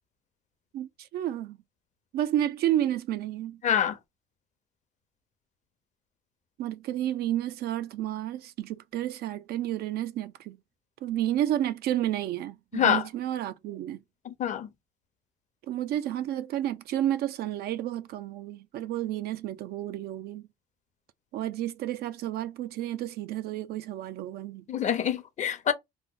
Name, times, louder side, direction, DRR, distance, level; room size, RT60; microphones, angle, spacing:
voice 1, 0.7-1.6 2.1-3.6 6.6-10.6 11.0-14.0 15.7-20.5 21.3-24.6, right 12 dB, 65° right, 0.4 m, -31 dB
voice 2, 3.6-4.0 12.7-13.0 14.2-14.7 24.7-25.7, left 9 dB, 45° left, 0.7 m, -26 dB
3.0 x 2.0 x 3.7 m
cardioid pair, 110°, 17 cm